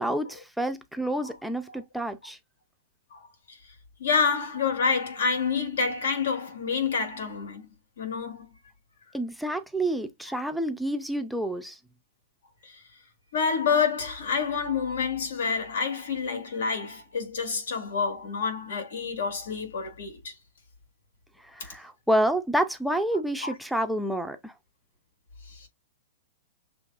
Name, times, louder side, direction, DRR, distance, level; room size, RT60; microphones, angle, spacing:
voice 1, 0.0-2.4 9.1-11.8 21.4-24.5, right 1 dB, ahead, 0.4 m, -28 dB
voice 2, 3.1-3.6 4.0-8.5 12.6-12.8 13.3-20.3 21.6-21.7 23.4-23.5 25.5-25.7, left 5 dB, 90° left, 2.5 m, -28 dB
6.8 x 2.9 x 2.4 m
hypercardioid pair, 165°, 0 cm